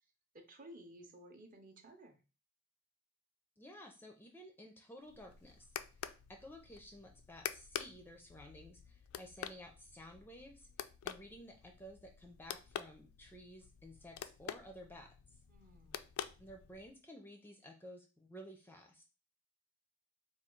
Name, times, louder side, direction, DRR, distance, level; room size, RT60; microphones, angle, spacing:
voice 1, 0.3-2.2 15.5-16.1, right 1 dB, 40° right, 4 dB, 0.7 m, -56 dB
voice 2, 3.6-10.7 11.0-15.1 16.4-19.1, equal, 10° left, 3 dB, 0.4 m, -54 dB
sound 1, 5.0-17.0, left 9 dB, 75° left, 0.3 m, -48 dB
3.6 x 2.3 x 4.4 m, 0.33 s
head